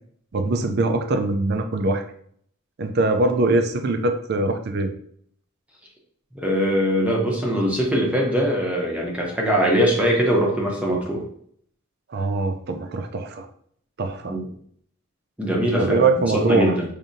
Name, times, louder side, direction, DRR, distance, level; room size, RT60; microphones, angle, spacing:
voice 1, 0.3-2.0 2.8-4.9 12.1-13.5 14.0-14.4 15.8-16.8, right 2 dB, 50° right, 6 dB, 0.4 m, -22 dB
voice 2, 6.4-11.2 14.3-14.5 15.4-16.1 16.3-16.8, equal, 5° right, -2 dB, 0.7 m, -21 dB
5.0 x 2.7 x 2.6 m, 0.64 s
head